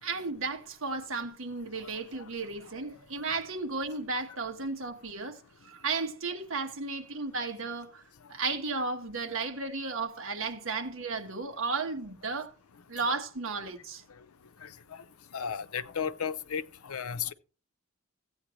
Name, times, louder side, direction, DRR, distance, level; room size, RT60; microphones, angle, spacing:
voice 1, 0.0-8.0 8.3-12.5 12.9-14.0, right 4 dB, 65° right, 1.4 m, -34 dB
voice 2, 15.3-17.3, left 7 dB, 90° left, 0.6 m, -34 dB
15.0 x 8.7 x 3.1 m
head